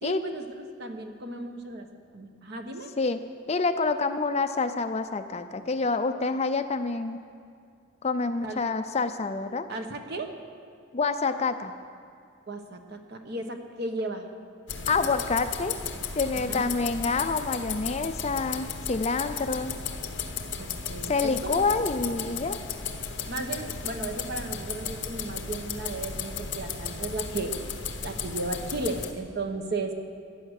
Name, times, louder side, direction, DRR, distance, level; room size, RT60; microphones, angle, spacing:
voice 1, 0.0-1.9 2.1-2.9 8.4-8.6 9.7-10.3 12.5-14.3 16.4-16.7 20.6-21.6 23.3-27.5 28.0-29.9, right 2 dB, 50° right, 5 dB, 1.1 m, -35 dB
voice 2, 3.0-7.2 8.0-9.7 10.9-11.7 14.9-15.8 16.1-19.7 21.0-22.6, left 4 dB, 30° left, 9 dB, 0.5 m, -27 dB
sound 1, 14.7-29.1, left 6 dB, 60° left, 1.1 m, -35 dB
15.0 x 9.8 x 6.5 m, 2.4 s
head